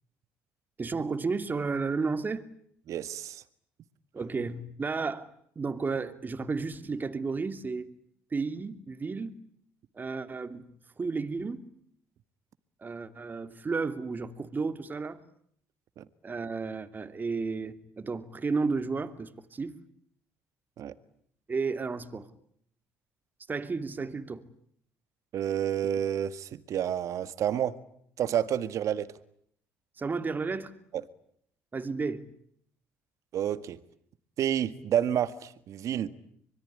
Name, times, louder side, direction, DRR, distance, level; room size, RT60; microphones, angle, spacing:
voice 1, 0.8-2.5 4.1-5.3 5.6-7.9 8.3-9.4 10.0-10.7 11.0-11.6 12.8-15.2 16.2-19.8 21.5-22.3 23.5-24.4 30.0-30.7 31.7-32.3, right 4 dB, 30° right, 2.7 m, -32 dB
voice 2, 2.9-3.4 16.0-16.1 20.8-20.9 25.3-27.7 28.2-29.1 33.3-33.8 34.4-36.1, right 10 dB, 60° right, 1.8 m, -29 dB
25.0 x 22.5 x 10.0 m
supercardioid pair, 70°, 6 cm